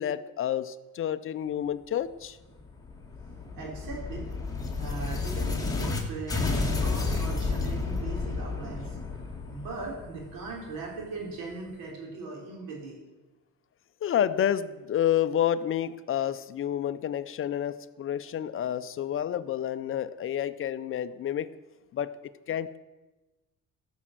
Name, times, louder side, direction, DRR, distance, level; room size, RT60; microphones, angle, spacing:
voice 1, 0.0-2.4 14.0-21.5 21.9-22.1 22.5-22.8, left 10 dB, 40° left, 14 dB, 0.5 m, -29 dB
sound 1, 2.6-6.0 6.3-11.0, left 3 dB, 10° left, 1.8 m, -31 dB
voice 2, 3.6-4.3 4.8-9.0 9.5-13.0, right 3 dB, 90° right, -1 dB, 4.1 m, -39 dB
14.0 x 6.2 x 7.5 m, 1.1 s
cardioid pair, 140°, 33 cm